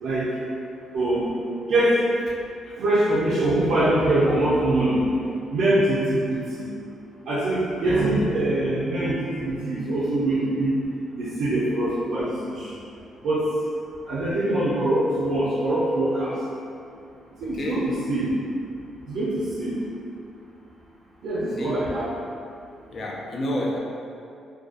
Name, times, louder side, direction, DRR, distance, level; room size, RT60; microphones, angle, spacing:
voice 1, 0.9-1.3 1.7-2.0 2.8-5.0 5.5-6.7 7.3-10.8 11.2-12.7 13.2-13.5 14.1-16.4 17.4-18.3 19.1-19.8 21.2-22.1, right 1 dB, 75° right, -8 dB, 0.4 m, -23 dB
voice 2, 17.4-17.9 21.6-21.8 22.9-23.8, left 1 dB, 50° left, -2 dB, 0.4 m, -29 dB
2.4 x 2.2 x 2.4 m, 2.5 s
cardioid pair, 90°, 0 cm